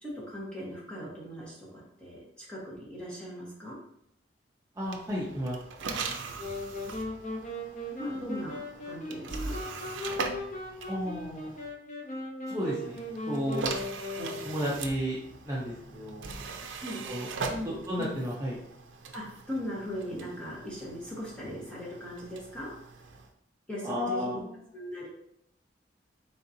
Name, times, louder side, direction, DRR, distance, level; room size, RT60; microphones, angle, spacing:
voice 1, 0.0-3.8 8.0-9.6 16.8-17.0 17.5-17.7 18.0-18.1 19.1-22.7 23.7-24.4 24.7-25.1, equal, 5° left, -6 dB, 1.3 m, -39 dB
voice 2, 4.8-5.6 10.9-11.5 12.5-13.0 13.3-13.7 14.2-15.2 15.4-16.3 17.0-17.3 17.6-18.6 23.8-24.6, equal, 20° right, -6 dB, 0.7 m, -33 dB
sound 1, 4.8-11.7 12.8-23.3, right 4 dB, 80° right, 0.5 m, -40 dB
sound 2, 6.4-14.8, left 1 dB, 40° left, 0.7 m, -38 dB
4.1 x 3.8 x 2.7 m, 0.73 s
head